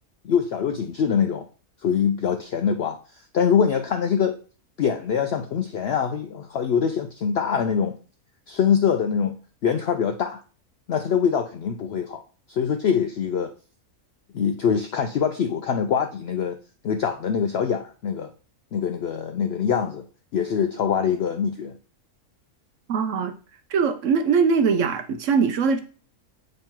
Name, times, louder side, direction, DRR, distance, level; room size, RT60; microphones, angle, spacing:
voice 1, 0.2-1.5 1.8-3.0 3.3-4.4 4.8-8.0 8.5-9.4 9.6-10.4 10.9-12.2 12.5-13.5 14.3-16.6 16.8-18.3 18.7-20.1 20.3-21.7, left 7 dB, 70° left, 0.6 m, -24 dB
voice 2, 22.9-23.4 23.7-25.8, right 5 dB, 65° right, 0.9 m, -21 dB
7.2 x 3.1 x 4.4 m
omnidirectional pair, 1.6 m